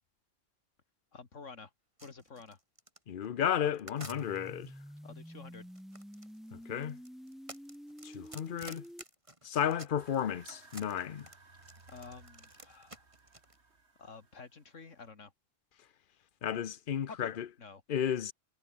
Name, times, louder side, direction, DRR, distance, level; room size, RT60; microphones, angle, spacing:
voice 1, 1.1-1.7 2.0-2.6 5.0-5.7 11.9-13.0 14.0-15.3 17.1-17.3 17.6-17.8, left 4 dB, 75° left, 2.6 m, -50 dB
sound 1, 2.0-4.7 5.5-10.2 10.5-13.6, right 1 dB, 25° right, 3.9 m, -51 dB
voice 2, 3.1-4.7 6.5-7.0 8.0-8.8 9.4-11.3 16.4-17.5 17.9-18.3, left 9 dB, 50° left, 0.9 m, -33 dB
sound 2, 4.0-9.0, equal, ahead, 2.0 m, -49 dB
sound 3, 10.0-15.1, right 3 dB, 60° right, 3.0 m, -59 dB
omnidirectional pair, 1.3 m